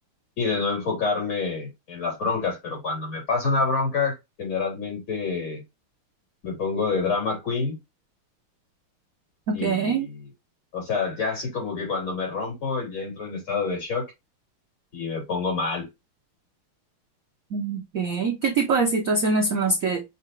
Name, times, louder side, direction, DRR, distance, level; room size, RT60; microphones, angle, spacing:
voice 1, 0.4-5.6 6.4-7.8 9.5-10.2 10.7-14.0 14.9-15.9, left 4 dB, 65° left, 3.8 m, -27 dB
voice 2, 9.5-10.1 17.5-20.0, right 4 dB, 70° right, 0.8 m, -24 dB
5.7 x 2.4 x 3.0 m
omnidirectional pair, 2.4 m